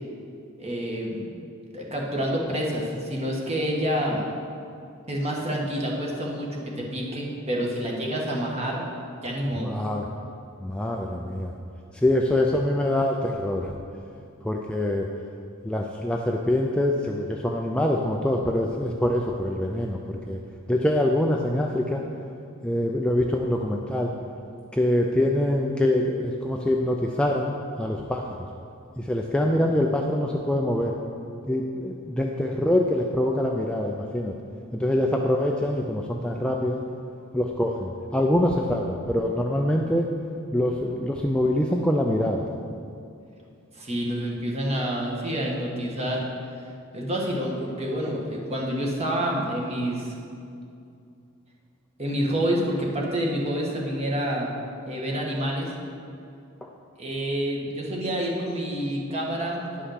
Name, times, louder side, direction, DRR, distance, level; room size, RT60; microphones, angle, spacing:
voice 1, 0.6-1.3 1.7-4.2 5.1-8.9 9.2-9.7 43.7-46.2 46.9-50.1 52.0-54.5 54.8-55.7 57.0-59.9, equal, 30° right, -1 dB, 1.5 m, -28 dB
voice 2, 9.6-10.1 10.6-11.5 12.0-13.7 14.4-15.1 15.6-20.4 20.7-22.0 22.6-24.1 24.7-28.2 29.0-30.9 31.5-34.3 34.7-36.8 37.3-40.1 40.5-42.4, left 1 dB, 5° left, 0 dB, 0.4 m, -24 dB
10.0 x 5.6 x 6.4 m, 2.5 s
head